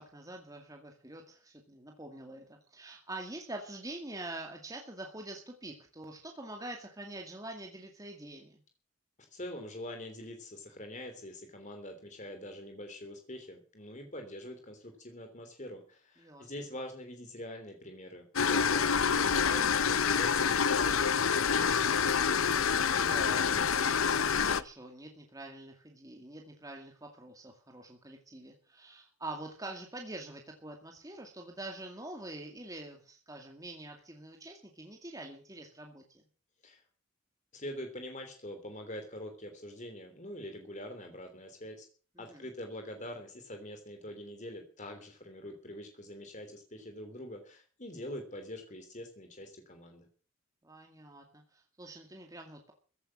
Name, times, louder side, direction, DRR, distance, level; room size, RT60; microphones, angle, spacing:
voice 1, 0.0-8.6 16.2-16.5 22.0-36.0 42.2-42.4 50.6-52.7, right 2 dB, 15° right, 2 dB, 2.2 m, -45 dB
voice 2, 9.3-21.5 36.6-36.8 37.5-41.9 42.2-50.1, left 1 dB, 35° left, 5 dB, 3.2 m, -44 dB
sound 1, 18.4-24.6, left 6 dB, 75° left, 0.8 m, -27 dB
15.5 x 11.0 x 7.5 m, 0.40 s
head